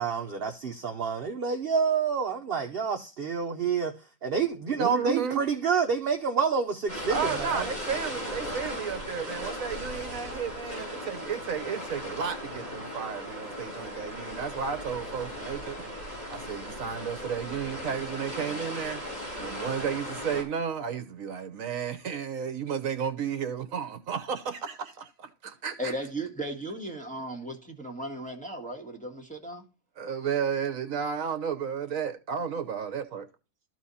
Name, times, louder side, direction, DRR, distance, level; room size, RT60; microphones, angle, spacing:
voice 1, 0.0-3.9 4.2-7.6, right 6 dB, 45° right, 0.9 m, -28 dB
voice 2, 4.8-5.4 7.1-25.9 30.0-33.2, right 7 dB, 65° right, 1.3 m, -33 dB
sound 1, 6.9-20.4, equal, 25° left, 3.9 m, -37 dB
voice 3, 25.8-29.6, right 1 dB, 5° left, 1.9 m, -36 dB
13.0 x 4.6 x 4.2 m
omnidirectional pair, 1.6 m